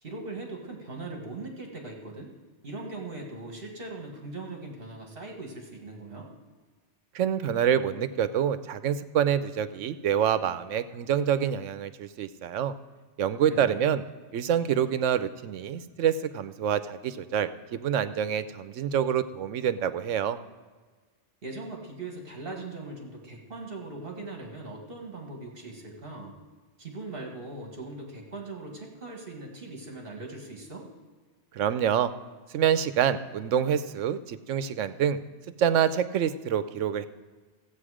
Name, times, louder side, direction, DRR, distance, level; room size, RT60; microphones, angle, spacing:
voice 1, 0.0-2.3 2.6-6.3 13.5-13.8 21.4-26.4 26.8-30.9, right 2 dB, 50° right, 1 dB, 2.0 m, -40 dB
voice 2, 7.1-12.7 13.2-14.0 14.3-20.4 31.5-32.1 32.5-35.2 35.6-37.1, right 9 dB, 90° right, 13 dB, 1.0 m, -26 dB
15.0 x 8.3 x 4.9 m, 1.4 s
omnidirectional pair, 1.2 m